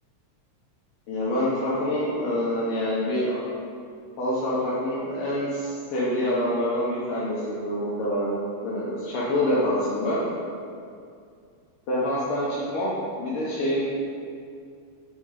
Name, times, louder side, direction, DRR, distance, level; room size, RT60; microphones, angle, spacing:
voice 1, 1.1-3.4 4.2-8.3 8.6-10.3 11.9-13.8, left 1 dB, 65° left, -8 dB, 1.5 m, -26 dB
5.4 x 4.5 x 4.9 m, 2.4 s
omnidirectional pair, 3.3 m